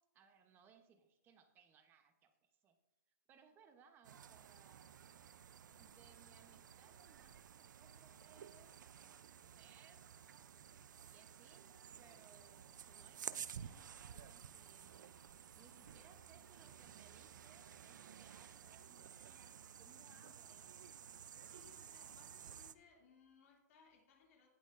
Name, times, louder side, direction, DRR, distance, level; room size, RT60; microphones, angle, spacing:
voice 1, 0.0-2.8 3.3-5.0 5.7-10.1 11.0-15.2 15.6-20.8, right 6 dB, 20° right, 8 dB, 0.8 m, -67 dB
sound 1, 4.0-22.7, right 8 dB, 85° right, 0.5 m, -54 dB
voice 2, 15.9-16.5 20.1-20.6 21.4-24.5, left 5 dB, 50° left, -1 dB, 2.5 m, -67 dB
18.0 x 6.2 x 2.5 m, 0.93 s
hypercardioid pair, 150°, 10 cm